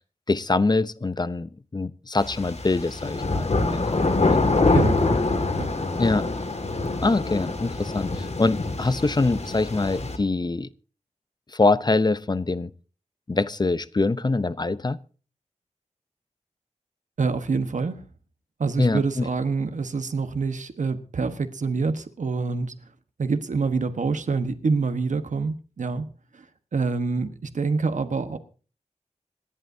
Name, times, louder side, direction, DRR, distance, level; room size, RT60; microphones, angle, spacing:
voice 1, 0.3-4.4 6.0-6.3 7.0-10.7 11.5-12.7 13.3-15.0 18.8-19.3, left 3 dB, 35° left, 16 dB, 0.7 m, -24 dB
sound 1, 2.2-10.2, left 3 dB, 60° left, 2.1 m, -25 dB
voice 2, 4.7-5.1 5.6-5.7 17.2-18.0 18.6-22.8 23.2-26.1 26.3-26.4 26.7-28.4, right 4 dB, 85° right, 9 dB, 1.3 m, -26 dB
26.0 x 11.0 x 2.7 m, 0.38 s
wide cardioid pair, 80°, 12 cm